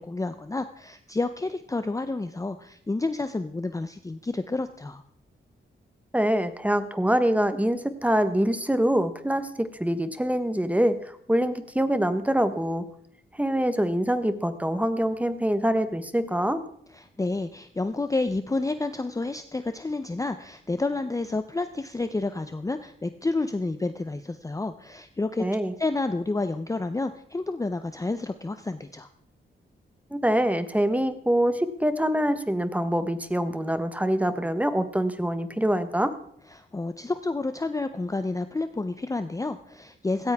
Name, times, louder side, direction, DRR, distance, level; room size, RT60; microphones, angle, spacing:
voice 1, 0.0-5.0 16.9-25.5 25.8-29.1 36.5-40.3, left 3 dB, 15° left, 10 dB, 0.6 m, -30 dB
voice 2, 6.1-11.0 11.3-12.9 13.4-16.6 25.4-25.7 30.1-36.1, equal, 5° right, 11 dB, 1.1 m, -25 dB
16.5 x 14.5 x 3.5 m, 0.67 s
wide cardioid pair, 105°, 21 cm